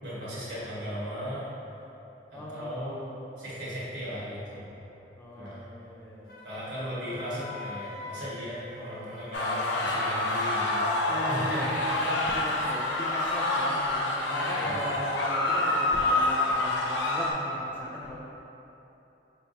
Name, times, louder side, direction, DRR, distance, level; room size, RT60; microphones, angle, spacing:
voice 1, 0.0-1.4 2.3-4.8 5.4-5.6 6.4-10.9 11.3-11.9 14.3-14.9, equal, 65° right, -10 dB, 1.4 m, -37 dB
voice 2, 2.3-3.1 5.2-6.4 7.1-7.2 11.1-11.8 12.0-18.2, equal, 15° left, -5 dB, 0.3 m, -38 dB
Wind instrument woodwind instrument, 6.3-9.7, left 2 dB, 55° left, 0.8 m, -44 dB
sound 1, 9.3-17.3, left 2 dB, 85° left, 0.5 m, -27 dB
4.4 x 3.4 x 2.6 m, 3.0 s
head